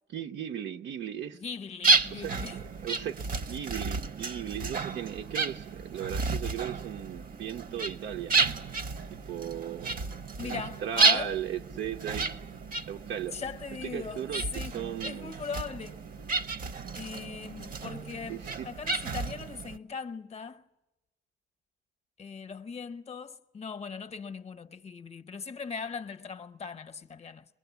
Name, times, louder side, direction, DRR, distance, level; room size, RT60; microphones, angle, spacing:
voice 1, 0.1-1.4 2.1-2.4 2.8-3.2 3.5-8.4 9.1-10.0 10.4-12.3 12.9-13.3 13.8-15.3 18.3-18.7, right 9 dB, 85° right, 0.9 m, -37 dB
voice 2, 1.4-2.6 10.4-11.4 13.3-14.2 14.5-16.0 16.9-18.4 18.6-20.6 22.2-27.4, left 5 dB, 35° left, 0.7 m, -39 dB
sound 1, 1.8-19.8, right 3 dB, 50° right, 0.7 m, -31 dB
23.0 x 21.0 x 8.1 m
cardioid pair, 150°, 18 cm